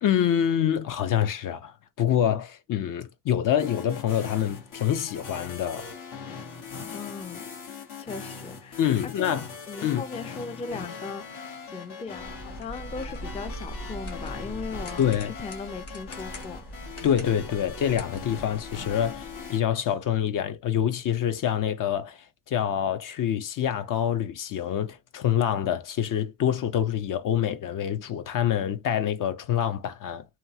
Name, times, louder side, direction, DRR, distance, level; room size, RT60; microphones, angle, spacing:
voice 1, 0.0-5.9 8.8-9.5 9.8-10.0 15.0-15.3 17.0-30.3, left 10 dB, 55° left, 0.6 m, -26 dB
sound 1, 3.6-19.6, left 5 dB, 75° left, 1.6 m, -41 dB
voice 2, 6.9-7.4 8.0-8.8 9.2-9.4 9.7-16.6, left 4 dB, 15° left, 0.4 m, -38 dB
sound 2, 12.2-19.5, right 1 dB, 40° left, 1.2 m, -41 dB
2.9 x 2.4 x 2.7 m
cardioid pair, 95°, 38 cm